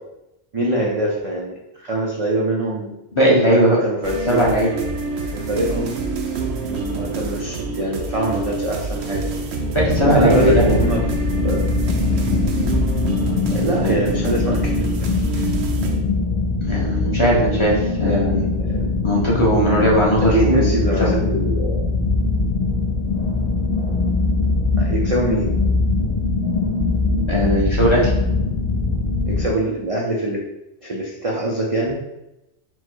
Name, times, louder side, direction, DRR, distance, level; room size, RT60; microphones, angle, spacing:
voice 1, 0.5-2.9 3.5-4.6 5.2-6.0 6.6-9.3 10.1-11.1 11.4-11.6 13.5-15.1 15.4-15.5 18.0-19.0 20.2-21.9 24.8-25.6 29.3-30.4 30.8-32.0, right 1 dB, 45° right, -2 dB, 0.5 m, -24 dB
voice 2, 3.1-3.8 4.3-4.7 9.7-10.8 13.5-14.0 16.6-18.4 19.0-20.7 21.0-21.1 27.3-28.1, equal, 25° left, -5 dB, 1.0 m, -18 dB
sound 1, 4.0-16.0, right 3 dB, 70° right, 0.9 m, -27 dB
sound 2, 9.7-29.5, left 3 dB, 60° left, 0.8 m, -22 dB
4.5 x 2.2 x 4.5 m, 0.92 s
omnidirectional pair, 1.2 m